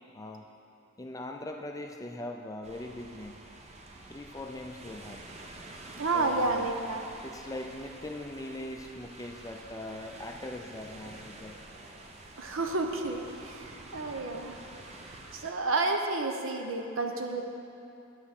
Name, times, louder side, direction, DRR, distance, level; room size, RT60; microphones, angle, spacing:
voice 1, 0.1-0.5 1.0-3.4 4.1-5.2 6.1-6.7 7.2-11.6, left 1 dB, 15° left, 3 dB, 0.4 m, -41 dB
sound 1, 2.6-15.5, right 2 dB, 30° right, 0.6 m, -48 dB
voice 2, 6.0-7.0 12.4-14.6 15.3-17.4, right 3 dB, 75° right, 4 dB, 0.8 m, -30 dB
9.3 x 5.7 x 6.5 m, 2.9 s
head